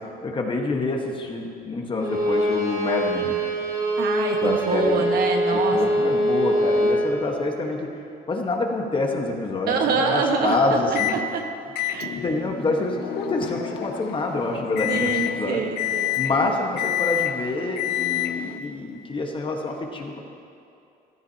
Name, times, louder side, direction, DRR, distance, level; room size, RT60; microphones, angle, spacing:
voice 1, 0.2-3.4 4.4-5.1 5.7-7.9 8.3-11.2 12.1-15.6 16.2-20.2, left 2 dB, 30° left, 1 dB, 1.4 m, -27 dB
Bowed string instrument, 2.0-7.0, equal, 25° right, 3.3 m, -23 dB
voice 2, 4.0-5.8 9.7-11.4 11.9-12.1 14.9-16.2, right 5 dB, 65° right, 2 dB, 1.4 m, -25 dB
Microwave oven, 11.0-11.2 11.8-18.6, left 12 dB, 75° left, 0.6 m, -28 dB
15.0 x 13.5 x 2.9 m, 2.6 s
cardioid pair, 110°, 17 cm